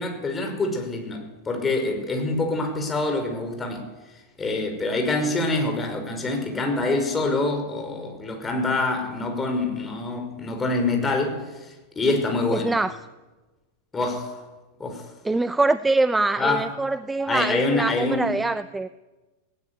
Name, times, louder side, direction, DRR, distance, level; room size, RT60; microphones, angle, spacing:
voice 1, 0.0-3.9 4.4-12.7 13.9-14.4 14.8-15.0 16.4-16.6 17.3-18.3, left 2 dB, 15° left, 3 dB, 5.5 m, -26 dB
voice 2, 12.5-13.0 15.2-18.9, right 2 dB, 10° right, 15 dB, 0.6 m, -24 dB
18.5 x 18.0 x 8.4 m, 1.2 s
figure-of-eight pair, 90°, 0 cm